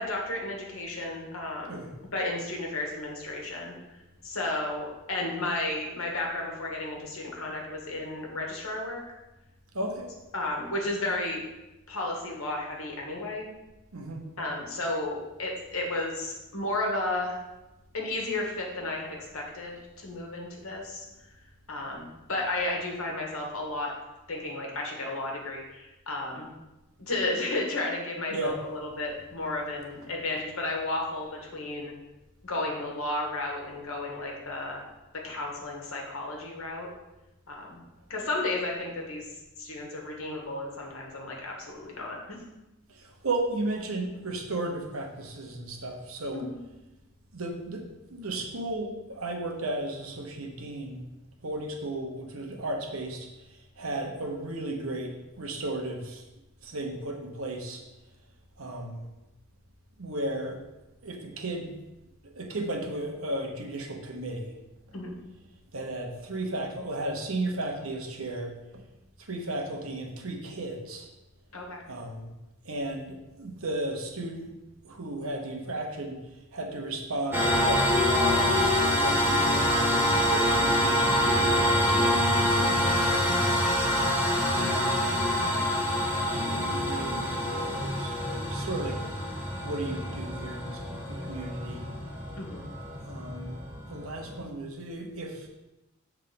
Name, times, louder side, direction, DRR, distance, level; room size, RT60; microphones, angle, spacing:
voice 1, 0.0-1.8 2.1-4.0 4.2-9.0 10.3-11.4 11.9-13.4 14.4-17.4 17.9-21.0 21.7-23.9 24.3-26.5 27.0-31.9 32.4-34.8 35.2-36.9 37.5-37.8 38.1-39.3 39.6-42.4 46.3-46.6 64.9-65.1 71.5-71.8 92.4-92.6, left 2 dB, 70° left, 0 dB, 1.5 m, -33 dB
voice 2, 9.7-10.1 13.9-14.3 28.3-28.6 42.9-46.4 47.3-51.0 51.4-56.2 56.6-57.8 58.6-59.1 60.0-60.6 61.0-61.7 62.3-64.5 65.7-68.8 69.2-71.1 71.9-72.3 72.6-74.5 74.8-76.2 76.5-80.0 80.3-83.6 84.5-85.0 85.4-85.7 86.3-89.0 89.6-91.9 93.0-93.6 93.9-95.5, right 2 dB, 70° right, 2 dB, 1.1 m, -35 dB
sound 1, 77.3-94.4, equal, 10° right, 1.0 m, -26 dB
7.0 x 3.7 x 5.1 m, 1.0 s
head